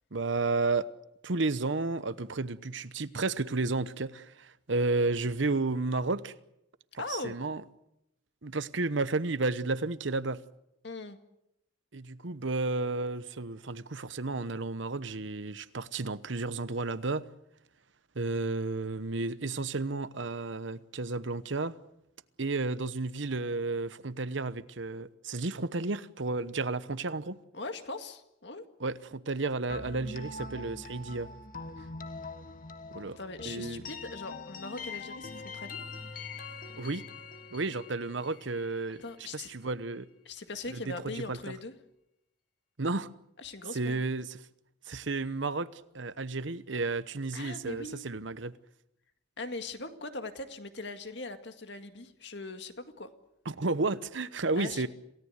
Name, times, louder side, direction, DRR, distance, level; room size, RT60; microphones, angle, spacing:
voice 1, 0.1-0.9 1.2-6.3 6.9-7.6 8.4-10.4 11.9-17.3 18.1-21.8 22.4-27.4 28.8-31.3 32.9-33.2 33.5-33.8 36.7-37.1 37.5-39.0 39.3-40.1 40.7-41.4 42.8-43.1 43.7-44.4 44.9-48.5 53.5-54.9, right 3 dB, 70° right, 1.0 m, -32 dB
voice 2, 7.0-7.4 10.8-11.2 27.5-28.7 33.2-35.8 39.0-39.5 40.3-41.7 43.4-44.0 47.3-48.1 49.4-53.1 54.6-54.9, left 3 dB, 60° left, 2.0 m, -40 dB
sound 1, 29.7-39.5, left 3 dB, 45° left, 1.6 m, -43 dB
27.5 x 17.5 x 8.1 m
head